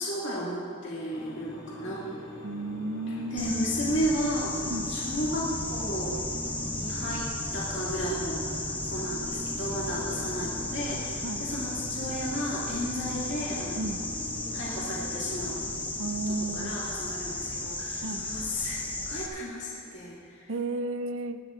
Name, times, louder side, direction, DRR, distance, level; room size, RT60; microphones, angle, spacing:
voice 1, 0.0-2.0 3.1-4.6 4.9-6.2 6.7-7.2 7.5-13.9 14.5-15.7 16.3-18.8 19.1-20.5, equal, 55° left, -7 dB, 2.2 m, -34 dB
sound 1, 1.1-15.8, left 1 dB, 85° left, 3.3 m, -42 dB
voice 2, 2.4-3.5 4.7-4.9 11.2-11.4 13.8-14.1 16.0-16.8 18.0-18.3 20.5-21.4, right 2 dB, 70° right, 10 dB, 0.6 m, -33 dB
sound 2, 3.4-19.3, left 2 dB, 10° left, 0.6 m, -34 dB
20.5 x 12.0 x 2.5 m, 2.7 s
head